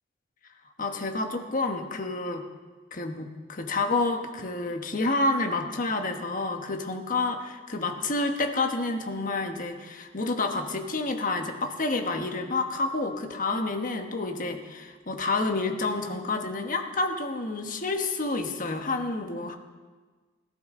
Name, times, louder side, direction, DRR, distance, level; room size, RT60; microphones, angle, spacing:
voice 1, 0.8-2.4 2.9-19.6, left 3 dB, 45° left, 4 dB, 1.3 m, -29 dB
17.5 x 12.5 x 3.8 m, 1.4 s
head